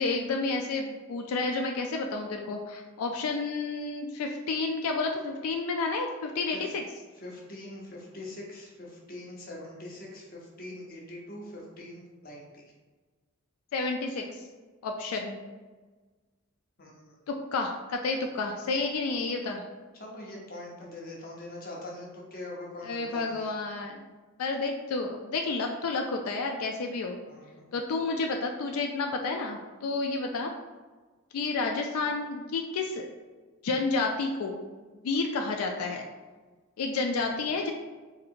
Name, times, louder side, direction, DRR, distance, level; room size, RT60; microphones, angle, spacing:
voice 1, 0.0-6.8 13.7-14.4 14.8-15.4 17.3-19.6 22.8-24.0 24.4-27.2 27.7-30.5 31.3-33.1 33.6-34.6 35.0-36.0 36.8-37.7, left 3 dB, 90° left, 2 dB, 0.4 m, -30 dB
voice 2, 7.1-12.6 16.8-17.1 19.9-23.5 27.3-27.7 37.3-37.5, left 1 dB, 40° left, -2 dB, 0.8 m, -43 dB
4.0 x 2.7 x 2.5 m, 1.3 s
head